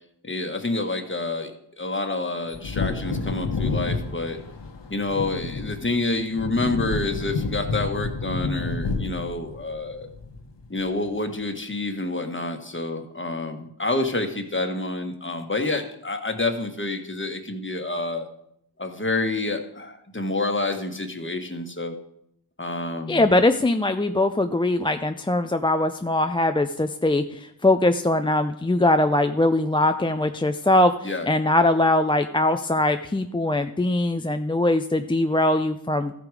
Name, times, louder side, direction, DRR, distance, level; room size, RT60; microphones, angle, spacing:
voice 1, 0.2-1.5 1.8-4.4 4.9-10.1 10.7-18.3 18.8-22.0 22.6-23.3 31.0-31.3, left 2 dB, 30° left, 5 dB, 1.3 m, -28 dB
Wind / Thunder, 2.5-10.8 11.1-11.2, left 4 dB, 80° left, 1.1 m, -30 dB
voice 2, 23.1-36.1, left 2 dB, 10° left, 7 dB, 0.4 m, -21 dB
14.0 x 4.9 x 4.8 m, 0.74 s
wide cardioid pair, 50°, 42 cm